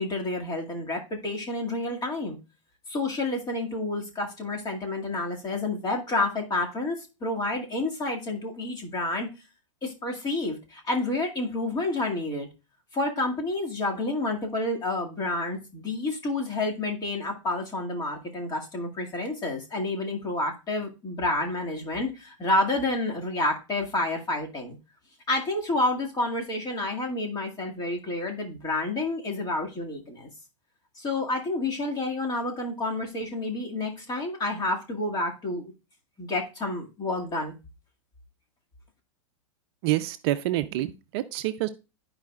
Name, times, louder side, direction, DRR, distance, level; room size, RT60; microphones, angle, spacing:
voice 1, 0.0-2.4 2.9-9.3 9.8-12.5 12.9-24.8 25.3-30.3 31.0-35.7 36.2-37.6, left 2 dB, 25° left, 1 dB, 2.1 m, -29 dB
voice 2, 39.8-41.7, right 15 dB, 50° right, 11 dB, 0.6 m, -27 dB
12.0 x 4.9 x 2.4 m, 0.29 s
hypercardioid pair, 115°, 17 cm